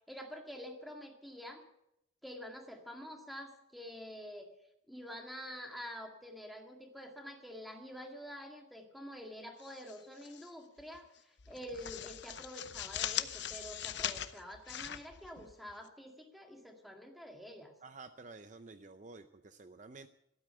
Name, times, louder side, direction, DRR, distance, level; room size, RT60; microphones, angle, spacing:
voice 1, 0.1-1.6 2.2-4.5 4.9-17.7, equal, ahead, 3 dB, 1.9 m, -47 dB
sound 1, 9.6-10.5 10.8-11.0 11.4-15.9, left 10 dB, 60° left, 0.7 m, -40 dB
voice 2, 17.8-20.1, right 3 dB, 40° right, 9 dB, 0.6 m, -51 dB
13.5 x 12.5 x 7.9 m, 0.82 s
head